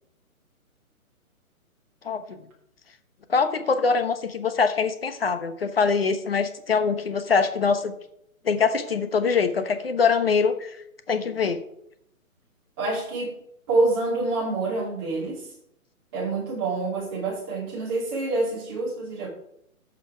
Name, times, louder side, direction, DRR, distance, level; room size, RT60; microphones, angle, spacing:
voice 1, 2.0-2.4 3.3-8.0 8.4-10.8 11.1-11.6, left 5 dB, 45° left, 9 dB, 1.0 m, -23 dB
voice 2, 12.8-13.3 13.7-15.5 16.1-19.3, right 2 dB, 15° right, -5 dB, 2.5 m, -26 dB
14.0 x 5.5 x 4.5 m, 0.75 s
hypercardioid pair, 180°, 43 cm